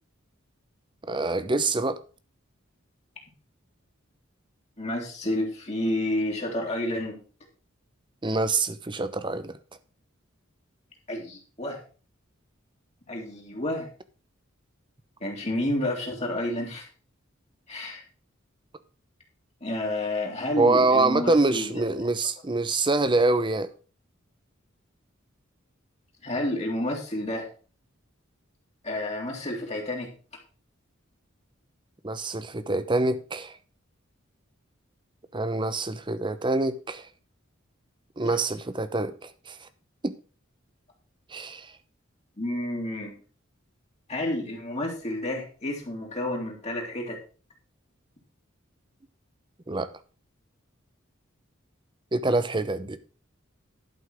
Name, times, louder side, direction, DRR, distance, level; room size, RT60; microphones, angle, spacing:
voice 1, 1.1-2.0 8.2-9.6 20.6-23.7 32.0-33.5 35.3-37.1 38.2-39.1 39.5-39.7 40.0-40.1 41.3-41.7 49.7-49.9 52.1-53.0, right 2 dB, 25° right, 0.8 m, -25 dB
voice 2, 4.8-7.2 11.1-11.8 13.1-13.9 15.2-16.9 17.7-18.0 19.6-22.1 26.2-27.5 28.8-30.1 42.4-43.1 44.1-47.2, left 1 dB, 35° left, 2.5 m, -30 dB
11.5 x 5.5 x 6.1 m
head